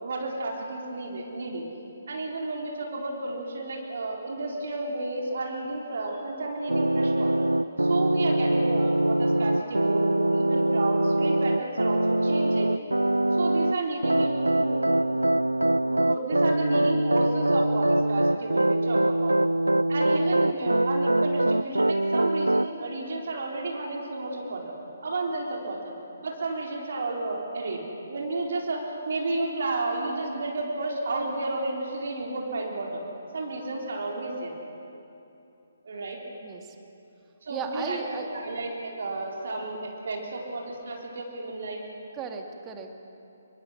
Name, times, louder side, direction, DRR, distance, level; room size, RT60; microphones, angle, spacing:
voice 1, 0.0-1.7 2.1-7.5 7.8-12.7 13.3-14.8 15.8-19.4 19.9-24.7 25.0-25.9 26.2-33.0 33.3-34.5 35.8-36.2 37.4-41.8, right 2 dB, 55° right, -1 dB, 4.2 m, -32 dB
sound 1, 6.7-13.8 14.0-22.7, right 1 dB, 80° right, 0.4 m, -23 dB
voice 2, 37.5-38.3 42.1-43.0, right 6 dB, 15° right, 4 dB, 2.1 m, -36 dB
26.5 x 23.5 x 6.6 m, 2.8 s
figure-of-eight pair, 135°, 0 cm